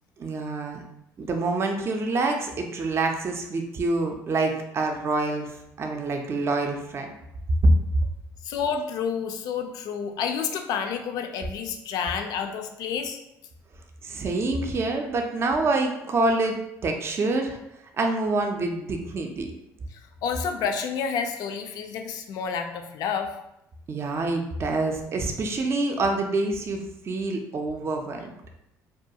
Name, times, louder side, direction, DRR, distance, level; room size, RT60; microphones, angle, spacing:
voice 1, 0.2-0.8 1.2-7.1 14.0-17.6 18.0-19.5 23.9-28.3, right 3 dB, 40° right, 3 dB, 0.4 m, -27 dB
voice 2, 8.4-13.2 19.9-23.3, left 6 dB, 70° left, 6 dB, 0.3 m, -29 dB
2.3 x 2.3 x 2.7 m, 0.83 s
supercardioid pair, 85°, 7 cm